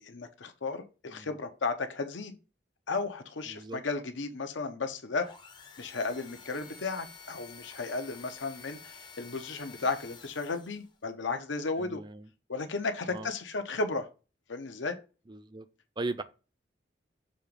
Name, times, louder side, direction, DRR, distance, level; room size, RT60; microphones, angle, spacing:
voice 1, 0.0-2.3 2.9-5.3 5.8-12.0 12.5-14.1 14.5-15.0, left 3 dB, 80° left, 0.9 m, -34 dB
voice 2, 3.5-3.8 11.8-12.3 13.1-13.3 15.3-15.7 16.0-16.2, right 2 dB, 25° right, 0.4 m, -38 dB
sound 1, 5.2-11.0, left 5 dB, 25° left, 0.6 m, -50 dB
6.5 x 2.9 x 5.2 m
head